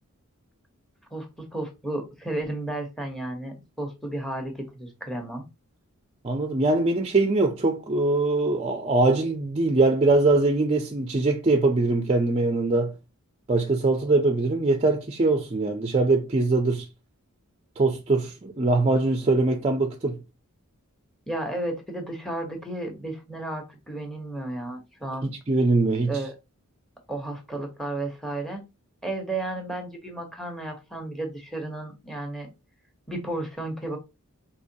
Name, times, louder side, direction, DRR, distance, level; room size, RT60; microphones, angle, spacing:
voice 1, 1.1-5.4 21.3-25.3 26.1-26.4 27.1-28.6 29.0-32.5 33.1-34.0, right 2 dB, ahead, 0.9 m, -33 dB
voice 2, 6.2-12.9 13.5-16.9 17.8-20.2 25.2-26.1, right 2 dB, 25° right, 0.4 m, -22 dB
4.9 x 2.9 x 2.7 m
head